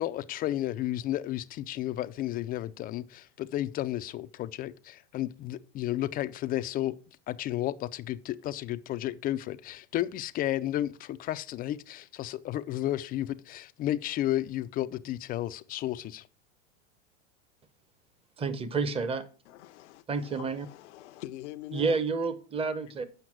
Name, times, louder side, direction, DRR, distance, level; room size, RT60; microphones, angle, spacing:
voice 1, 0.0-7.0 7.3-16.3, left 13 dB, 25° left, 0.4 m, -32 dB
voice 2, 18.4-19.2 20.1-20.7 21.7-23.0, right 4 dB, 15° right, 0.8 m, -29 dB
voice 3, 19.5-22.0, left 15 dB, 75° left, 0.8 m, -44 dB
7.8 x 5.8 x 5.9 m
supercardioid pair, 130°, 35 cm